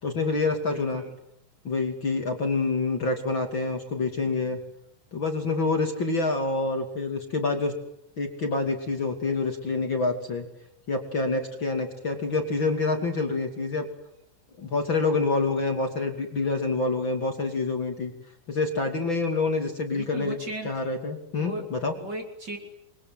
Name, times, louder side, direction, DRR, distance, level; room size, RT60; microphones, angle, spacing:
voice 1, 0.0-1.0 1.6-4.6 5.1-7.7 8.2-10.4 10.9-13.8 14.6-18.1 18.5-20.4 20.6-21.9, left 3 dB, 35° left, 4 dB, 3.1 m, -27 dB
voice 2, 0.7-1.2 19.9-20.7 21.4-21.7 22.0-22.6, right 2 dB, 30° right, 3 dB, 3.6 m, -36 dB
28.5 x 23.0 x 7.8 m, 0.76 s
omnidirectional pair, 3.9 m